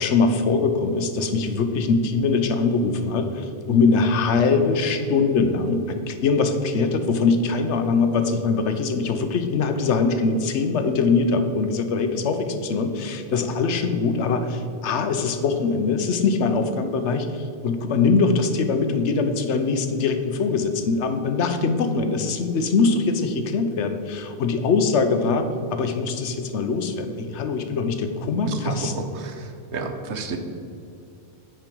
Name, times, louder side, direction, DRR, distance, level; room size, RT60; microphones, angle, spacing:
voice 1, 0.0-28.9, left 4 dB, 85° left, 8 dB, 1.0 m, -22 dB
voice 2, 28.4-30.4, right 4 dB, 80° right, 6 dB, 1.1 m, -30 dB
9.2 x 5.1 x 4.6 m, 2.6 s
omnidirectional pair, 1.2 m